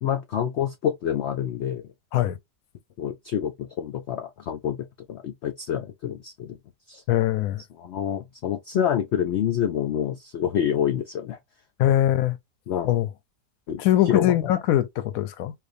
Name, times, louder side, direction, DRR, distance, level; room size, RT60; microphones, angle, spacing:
voice 1, 0.0-1.8 3.0-6.6 6.9-7.0 7.8-11.4 12.7-12.9 13.7-14.4, left 9 dB, 90° left, 0.6 m, -27 dB
voice 2, 7.1-7.6 11.8-12.4 12.8-13.1 13.8-15.5, left 13 dB, 70° left, 0.9 m, -22 dB
4.4 x 2.4 x 2.6 m
omnidirectional pair, 1.7 m